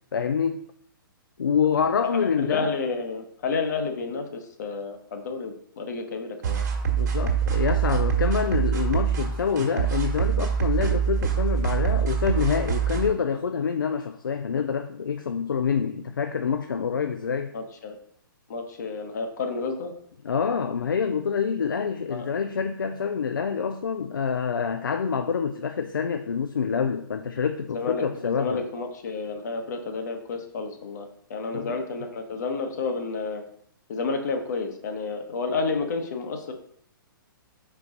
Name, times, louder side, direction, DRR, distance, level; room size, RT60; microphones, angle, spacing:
voice 1, 0.1-0.6 1.4-2.7 6.9-17.5 20.2-28.6 31.5-31.8, left 6 dB, 65° left, 0.5 m, -26 dB
voice 2, 2.0-6.6 17.5-18.0 18.5-19.9 22.1-22.3 27.7-33.4 33.9-36.5, left 4 dB, 50° left, 1.1 m, -30 dB
sound 1, 6.4-13.1, right 8 dB, 50° right, 1.4 m, -25 dB
5.7 x 4.7 x 3.8 m
figure-of-eight pair, 120°, 12 cm